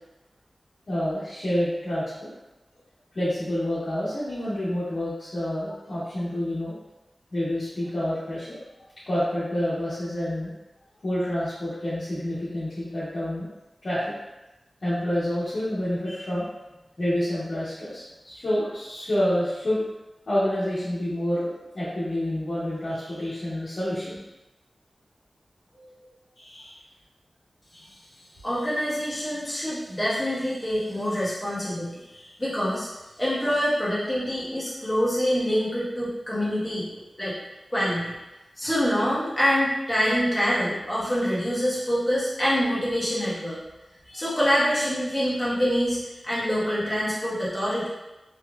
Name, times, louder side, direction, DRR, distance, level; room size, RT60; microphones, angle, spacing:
voice 1, 0.9-2.3 3.1-6.7 7.3-8.6 9.1-10.5 11.0-13.5 13.8-14.0 14.8-16.4 17.0-19.8 20.3-21.5 21.7-24.2 25.7-26.0 26.4-26.7 27.7-27.8 32.1-32.3, left 1 dB, 65° left, -14 dB, 1.3 m, -28 dB
voice 2, 28.4-32.0 32.4-32.9 33.2-36.9 37.2-37.3 37.7-38.1 38.6-43.6 44.0-46.0 46.2-47.9, equal, 15° left, -8 dB, 1.4 m, -25 dB
3.4 x 3.2 x 2.4 m, 1.0 s
cardioid pair, 50°, 0 cm